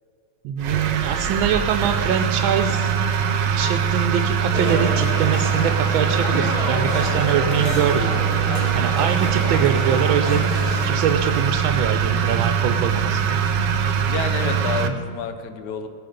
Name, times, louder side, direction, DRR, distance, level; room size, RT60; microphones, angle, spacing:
voice 1, 0.4-2.9 3.4-8.2 8.7-13.4 14.8-14.9, right 8 dB, 80° right, 7 dB, 1.4 m, -24 dB
sound 1, 0.6-14.9, right 7 dB, 65° right, 1.4 m, -22 dB
sound 2, 4.5-10.9, left 1 dB, 85° left, 2.6 m, -29 dB
voice 2, 14.0-15.9, left 5 dB, 60° left, 8 dB, 1.5 m, -29 dB
19.0 x 9.2 x 5.2 m, 2.5 s
omnidirectional pair, 2.2 m